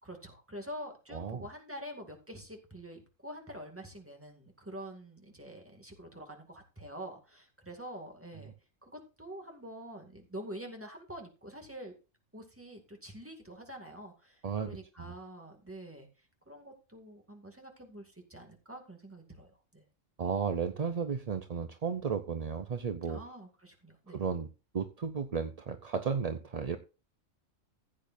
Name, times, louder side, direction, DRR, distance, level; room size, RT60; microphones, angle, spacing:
voice 1, 0.0-8.5 8.8-12.0 12.3-19.8 23.1-24.2, equal, 10° right, 3 dB, 2.1 m, -46 dB
voice 2, 1.1-1.5 14.4-15.1 20.2-23.2 24.1-24.5 24.7-26.8, right 6 dB, 45° right, 9 dB, 0.5 m, -34 dB
15.5 x 8.7 x 2.6 m, 0.31 s
omnidirectional pair, 1.3 m